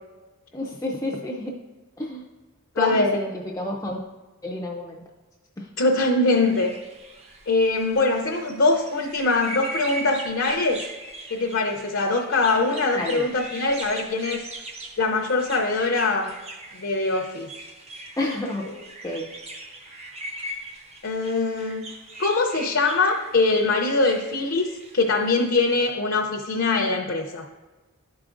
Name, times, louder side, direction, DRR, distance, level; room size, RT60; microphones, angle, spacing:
voice 1, 0.5-1.6 2.0-2.2 2.8-4.0 4.4-5.0 5.6-5.7 12.9-13.3 18.2-18.7 19.0-19.3, left 1 dB, 15° left, -1 dB, 0.4 m, -29 dB
voice 2, 2.8-3.2 5.8-6.8 7.5-10.8 11.3-14.4 15.0-16.3 16.7-17.5 21.0-21.9 22.2-24.7 24.9-27.4, left 3 dB, 60° left, 2 dB, 0.6 m, -22 dB
sound 1, 6.3-25.8, right 2 dB, 30° right, 0.6 m, -40 dB
11.5 x 4.8 x 2.5 m, 1.2 s
head